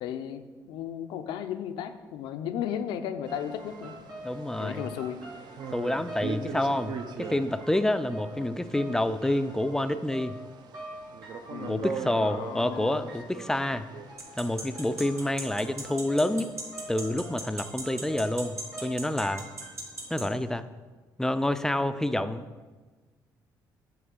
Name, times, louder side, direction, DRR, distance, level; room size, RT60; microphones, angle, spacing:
voice 1, 0.0-3.9 4.6-5.2 11.5-13.0, left 9 dB, 85° left, 9 dB, 0.4 m, -35 dB
sound 1, 3.3-20.6, right 5 dB, 60° right, 0.5 m, -43 dB
sound 2, 3.3-19.7, right 1 dB, 90° right, 2.0 m, -46 dB
voice 2, 4.2-4.9 5.7-10.4 11.7-13.9 14.4-16.5 16.9-19.4 20.1-20.6 21.2-22.4, left 1 dB, 5° left, 11 dB, 0.3 m, -28 dB
sound 3, 14.2-20.2, right 3 dB, 40° right, 1.3 m, -36 dB
7.8 x 3.1 x 5.1 m, 1.3 s
cardioid pair, 95°, 8 cm